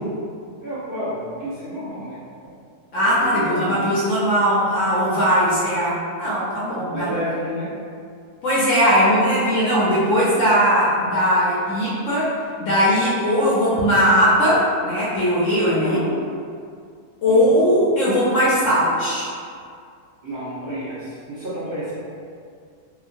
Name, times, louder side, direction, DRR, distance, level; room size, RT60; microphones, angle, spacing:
voice 1, 0.6-2.2 3.1-3.8 6.9-7.7 15.7-16.1 17.2-17.5 20.2-21.9, equal, 45° right, -13 dB, 0.8 m, -30 dB
voice 2, 2.9-7.1 8.4-12.3 12.6-16.0 17.2-19.3, equal, 65° left, -8 dB, 0.8 m, -19 dB
2.9 x 2.3 x 2.5 m, 2.3 s
omnidirectional pair, 1.7 m